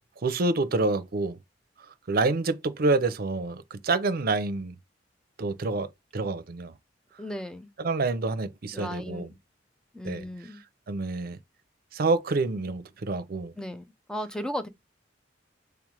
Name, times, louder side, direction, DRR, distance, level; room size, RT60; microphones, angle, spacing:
voice 1, 0.2-1.4 2.1-4.7 5.4-5.9 6.1-6.7 7.8-9.3 10.0-10.3 10.9-11.4 11.9-13.5, right 3 dB, 50° right, 0.6 m, -27 dB
voice 2, 7.2-7.7 8.7-9.3 9.9-10.6 13.6-14.7, equal, 5° left, 0.4 m, -35 dB
3.3 x 3.2 x 3.7 m
head